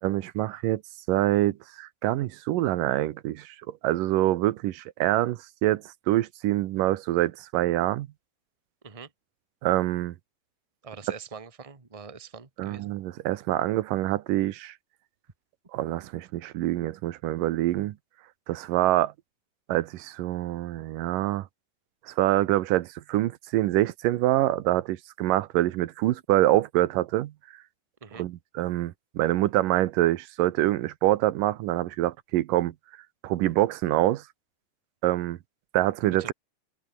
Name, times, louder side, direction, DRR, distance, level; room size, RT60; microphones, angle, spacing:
voice 1, 0.0-0.8 1.1-3.6 3.8-8.1 9.6-10.2 12.6-14.7 15.7-18.0 18.5-19.1 19.7-21.5 22.1-27.3 28.2-32.7 33.2-34.2 35.0-35.4 35.7-36.3, right 15 dB, 80° right, 2.6 m, -25 dB
voice 2, 10.8-12.9 28.0-28.3 36.2-36.3, right 5 dB, 55° right, 0.3 m, -43 dB
omnidirectional pair, 3.8 m